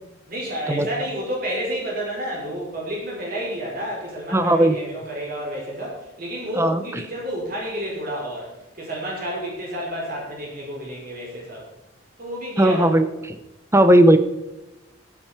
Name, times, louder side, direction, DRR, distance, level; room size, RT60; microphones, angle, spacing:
voice 1, 0.3-8.5 8.7-11.7 12.2-13.0, equal, 50° right, -4 dB, 5.3 m, -30 dB
voice 2, 4.3-4.8 6.6-6.8 12.6-13.1 13.7-14.2, right 1 dB, 15° right, 9 dB, 0.9 m, -15 dB
18.0 x 9.3 x 4.5 m, 0.98 s
head